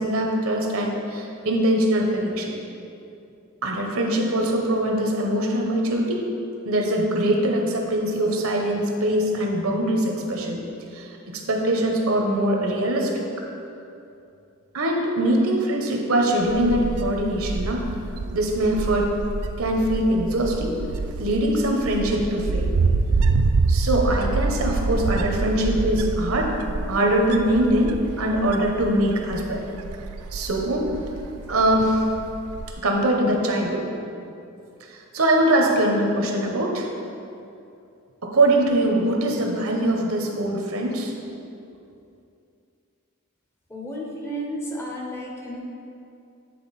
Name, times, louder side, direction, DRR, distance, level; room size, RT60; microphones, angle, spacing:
voice 1, 0.0-2.5 3.6-6.2 6.6-10.6 10.9-13.2 14.7-17.8 18.3-19.1 19.6-20.7 21.2-22.7 23.7-26.5 26.9-29.6 30.3-30.9 31.5-32.0 32.8-33.9 35.1-36.9 38.2-41.1, right 1 dB, 65° right, 1 dB, 0.8 m, -22 dB
Wind, 16.4-32.7, right 3 dB, 85° right, 0.4 m, -27 dB
voice 2, 43.7-45.6, equal, 10° left, -2 dB, 0.7 m, -32 dB
8.6 x 3.9 x 4.1 m, 2.6 s
head